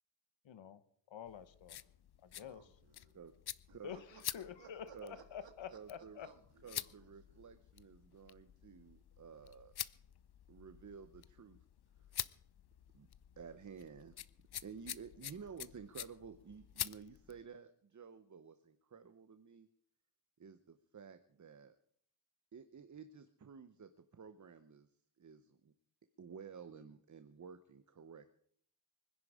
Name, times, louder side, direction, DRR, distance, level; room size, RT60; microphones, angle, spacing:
voice 1, 0.4-0.8 1.1-1.8 2.2-2.7 3.8-4.0 4.3-6.3, left 8 dB, 80° left, 13 dB, 1.1 m, -48 dB
sound 1, 1.2-17.4, left 11 dB, 60° left, 0.6 m, -48 dB
voice 2, 2.3-3.1 3.7-7.5 15.3-15.5, right 5 dB, 70° right, 5 dB, 2.7 m, -63 dB
voice 3, 5.7-6.2 6.6-9.8 10.5-11.6 12.0-12.2 12.9-13.1 13.4-14.2 14.6-19.7 20.4-21.8 22.5-24.9 25.2-25.7 26.2-28.3, right 6 dB, 40° right, 10 dB, 0.9 m, -53 dB
24.5 x 10.5 x 4.9 m, 0.64 s
wide cardioid pair, 120°, 45 cm